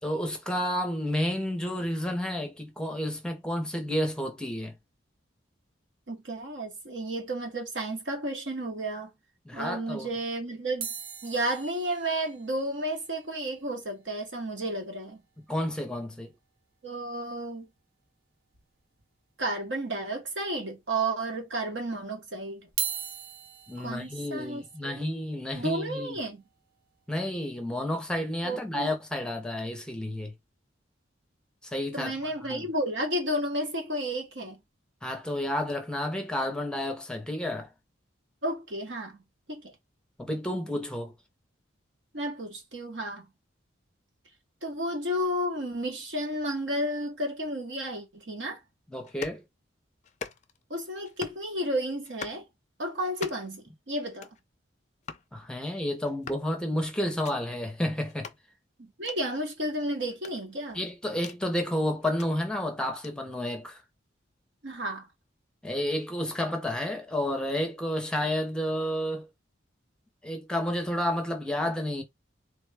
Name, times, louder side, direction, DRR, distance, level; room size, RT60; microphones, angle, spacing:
voice 1, 0.0-4.7 9.5-10.2 15.5-16.3 23.7-26.2 27.1-30.3 31.6-32.6 35.0-37.7 40.2-41.1 48.9-49.4 55.3-58.3 60.7-63.8 65.6-69.3 70.2-72.0, left 1 dB, 5° left, 0.7 m, -31 dB
voice 2, 6.1-9.1 9.5-10.9 11.2-15.2 16.8-17.7 19.4-22.7 23.8-25.2 25.5-26.4 28.4-28.9 31.9-34.6 38.4-39.2 39.5-39.7 42.1-43.2 44.6-48.6 50.7-52.4 52.8-54.3 58.8-60.8 64.6-65.1, right 1 dB, 70° right, 1.1 m, -32 dB
sound 1, 10.8-15.1 15.4-15.5 15.7-15.9 16.3-16.4 17.8-17.9 18.5-19.1 19.6-19.7 20.5-20.6 22.6-28.7 29.3-29.5, right 8 dB, 50° right, 0.7 m, -41 dB
sound 2, 49.0-49.4 50.0-50.6 51.0-51.5 52.0-52.4 53.0-53.6 54.0-54.4 55.0-55.3 56.0-56.5 57.1-57.3 58.1-58.4 59.0-59.2 60.1-61.4 62.0-62.3 63.0-63.1, left 5 dB, 40° left, 0.4 m, -42 dB
3.4 x 2.2 x 3.4 m
head